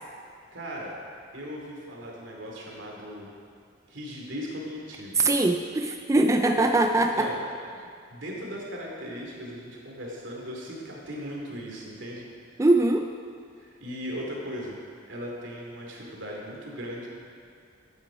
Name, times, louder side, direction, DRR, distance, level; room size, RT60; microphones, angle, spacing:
voice 1, 0.5-0.9 1.3-3.3 3.9-5.3 7.0-7.4 8.1-12.3 13.6-14.8 15.1-17.1, equal, 75° right, -2 dB, 2.5 m, -38 dB
voice 2, 5.2-7.3 12.6-13.1, right 2 dB, 15° right, 4 dB, 0.4 m, -22 dB
12.5 x 8.5 x 4.9 m, 2.3 s
head